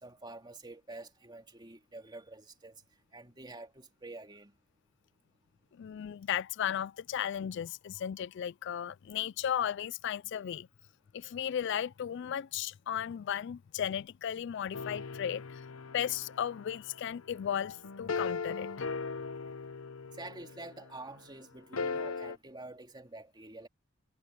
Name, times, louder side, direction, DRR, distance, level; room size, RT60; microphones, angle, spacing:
voice 1, 0.0-2.8 3.1-4.5 20.2-23.7, right 2 dB, 20° right, 2.6 m, -48 dB
voice 2, 5.7-10.7 11.1-15.6 15.9-18.7, left 9 dB, 60° left, 0.3 m, -35 dB
sound 1, 14.7-21.0 21.7-22.4, left 4 dB, 85° left, 0.8 m, -39 dB
head